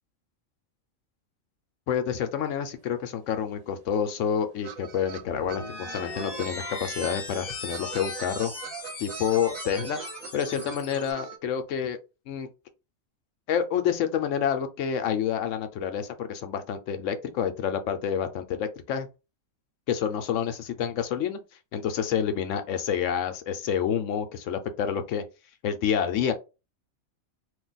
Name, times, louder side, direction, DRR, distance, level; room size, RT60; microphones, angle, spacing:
voice 1, 1.9-8.5 9.0-10.0 10.3-12.0 12.3-12.5 13.5-19.1 19.9-21.4 21.7-25.2 25.6-26.3, left 8 dB, 70° left, 0.9 m, -28 dB
sound 1, 2.9-3.0 3.2-6.5 7.0-7.2 7.5-11.4, right 8 dB, 90° right, 1.0 m, -42 dB
sound 2, 5.2-11.1, left 2 dB, 30° left, 1.0 m, -38 dB
2.6 x 2.2 x 3.9 m
omnidirectional pair, 1.4 m